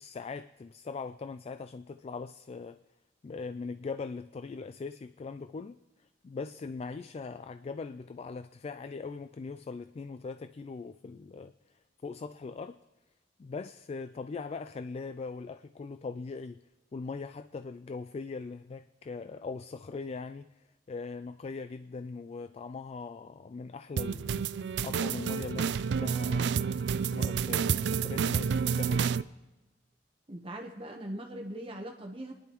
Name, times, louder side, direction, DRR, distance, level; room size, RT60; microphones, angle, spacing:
voice 1, 0.0-2.8 3.2-12.8 13.4-16.6 16.9-26.7 27.1-29.1, left 4 dB, 35° left, 0.3 m, -41 dB
sound 1, 24.0-29.2, right 6 dB, 75° right, 0.4 m, -29 dB
voice 2, 30.3-32.3, right 1 dB, 30° right, 1.0 m, -40 dB
25.0 x 10.5 x 3.0 m
head